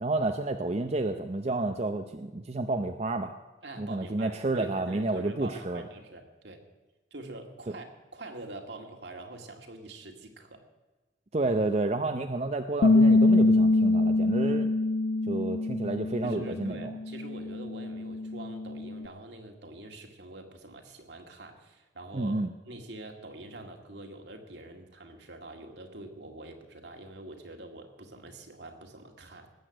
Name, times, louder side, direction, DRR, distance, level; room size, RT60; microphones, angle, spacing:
voice 1, 0.0-3.3 3.8-5.8 7.7-7.8 11.3-14.7 15.3-16.9 22.1-22.5, right 2 dB, 35° right, 6 dB, 0.6 m, -30 dB
voice 2, 3.6-6.6 7.1-10.6 16.2-29.5, right 2 dB, 70° right, 3 dB, 2.1 m, -45 dB
Bass guitar, 12.8-19.1, left 2 dB, 60° left, 0.4 m, -25 dB
19.0 x 8.1 x 7.9 m, 1.2 s
head